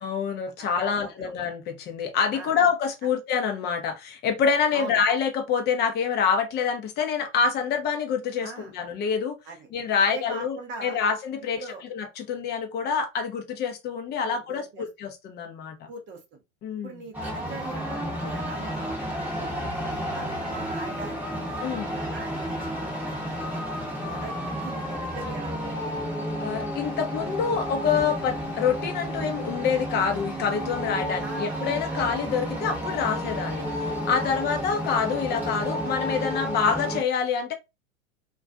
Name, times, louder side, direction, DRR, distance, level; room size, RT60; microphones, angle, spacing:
voice 1, 0.0-9.4 9.7-11.6 11.9-15.9 16.6-17.0 21.6-21.9 26.4-33.7 34.1-37.5, left 6 dB, 25° left, 0.6 m, -26 dB
voice 2, 0.6-1.3 2.3-2.6 3.0-3.1 4.7-5.0 8.4-8.7 9.5-9.7 10.0-11.0 11.6-11.8 14.2-14.9 15.9-16.4 16.8-19.5 19.9-21.5 21.8-23.6 24.0-26.1 31.2-32.0 34.2-34.4, right 3 dB, 30° right, 0.7 m, -41 dB
sound 1, 17.1-37.0, equal, 5° right, 0.9 m, -31 dB
2.3 x 2.3 x 2.3 m
hypercardioid pair, 100°, 39 cm